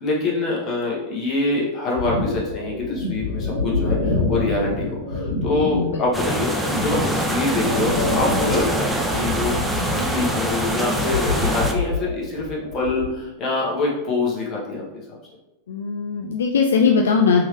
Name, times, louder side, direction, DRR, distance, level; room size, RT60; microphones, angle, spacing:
voice 1, 0.0-15.2, left 3 dB, 30° left, -4 dB, 1.3 m, -25 dB
sound 1, 1.9-13.1, left 2 dB, 85° right, 1.1 m, -27 dB
sound 2, 6.1-11.7, right 1 dB, 5° right, 0.6 m, -24 dB
voice 2, 15.7-17.4, left 5 dB, 65° left, 2 dB, 0.3 m, -19 dB
3.5 x 3.4 x 3.3 m, 0.97 s
figure-of-eight pair, 90°, 0 cm